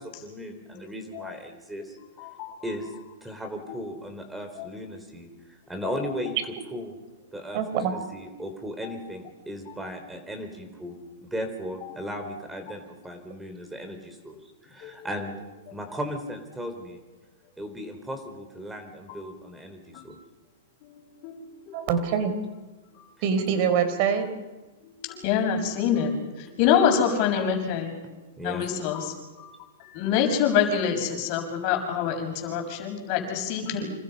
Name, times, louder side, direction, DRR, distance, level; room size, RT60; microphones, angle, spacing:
voice 1, 0.0-2.0 2.6-2.9 3.2-6.4 6.7-7.0 7.3-15.4 15.7-17.0 17.6-20.2 28.4-28.7, equal, 5° right, 6 dB, 4.2 m, -36 dB
voice 2, 2.2-2.6 3.7-3.8 4.5-4.7 5.8-6.1 8.8-9.0 9.7-9.8 11.8-12.0 14.8-14.9 19.1-19.2 19.9-20.1 20.8-21.9 22.9-23.0 24.8-29.5 29.8-33.9, left 8 dB, 45° left, 3 dB, 6.7 m, -27 dB
voice 3, 7.5-7.9 21.7-22.3 23.2-24.3, right 7 dB, 50° right, 9 dB, 4.2 m, -24 dB
28.0 x 27.0 x 5.7 m, 1.2 s
hypercardioid pair, 130°, 0 cm